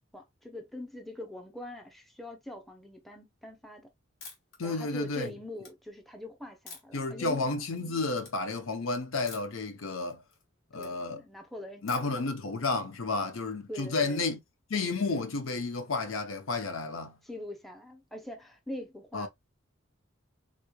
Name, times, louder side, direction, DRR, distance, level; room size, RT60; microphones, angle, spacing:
voice 1, 0.1-3.9 4.6-7.5 10.7-12.2 13.7-14.3 17.2-19.3, left 1 dB, ahead, 0.6 m, -43 dB
sound 1, 4.2-4.6 5.0-5.7 6.7-7.1 7.5-7.9 8.2-8.3 9.3-9.6 10.0-10.9 11.9-12.3, left 4 dB, 65° left, 1.4 m, -48 dB
voice 2, 4.6-5.3 6.9-10.2 10.7-11.2 11.8-14.4 14.7-17.2 19.1-19.3, left 3 dB, 80° left, 0.7 m, -31 dB
3.7 x 3.0 x 2.2 m
head